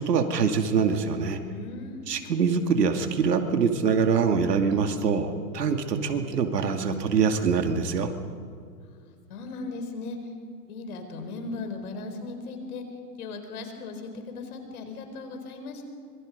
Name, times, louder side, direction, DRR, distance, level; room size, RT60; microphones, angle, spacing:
voice 1, 0.0-1.4 2.1-8.1, right 6 dB, 80° right, 6 dB, 2.5 m, -24 dB
voice 2, 1.4-2.1 8.9-10.3 10.6-12.8 13.2-15.9, left 3 dB, 65° left, 6 dB, 4.6 m, -37 dB
26.0 x 22.5 x 5.3 m, 2.2 s
hypercardioid pair, 130°, 47 cm